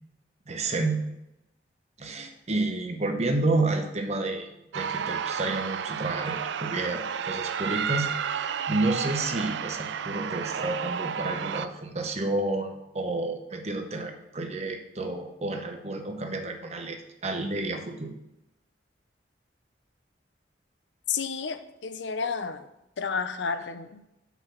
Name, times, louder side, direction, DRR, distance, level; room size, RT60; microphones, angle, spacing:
voice 1, 0.5-1.0 2.0-4.5 4.7-18.1, right 2 dB, 35° right, 5 dB, 0.9 m, -30 dB
sound 1, 4.7-11.7, right 7 dB, 80° right, 0.4 m, -31 dB
voice 2, 21.1-22.7 23.0-24.0, left 5 dB, 85° left, 10 dB, 0.6 m, -31 dB
5.8 x 5.8 x 5.9 m, 0.89 s
head